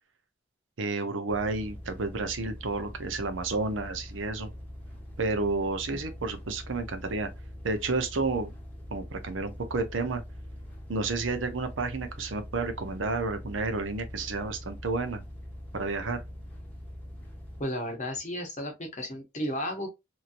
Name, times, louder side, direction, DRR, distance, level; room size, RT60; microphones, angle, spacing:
voice 1, 0.8-4.5 5.2-7.3 7.6-8.5 8.9-10.2 10.9-15.2 15.7-16.2, right 3 dB, 90° right, 0.7 m, -31 dB
sound 1, 1.3-17.6, equal, 10° left, 0.9 m, -43 dB
voice 2, 17.6-19.9, equal, 40° left, 0.7 m, -33 dB
3.0 x 2.7 x 2.5 m
head